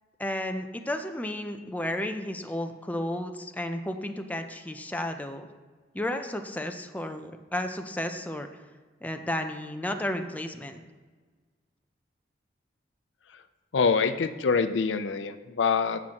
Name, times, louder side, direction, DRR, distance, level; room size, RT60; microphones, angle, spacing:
voice 1, 0.2-5.5 5.9-8.5 9.0-10.8, left 1 dB, 10° left, 6 dB, 0.5 m, -33 dB
voice 2, 13.7-16.0, left 5 dB, 90° left, 11 dB, 0.5 m, -25 dB
15.0 x 5.9 x 2.9 m, 1.4 s
head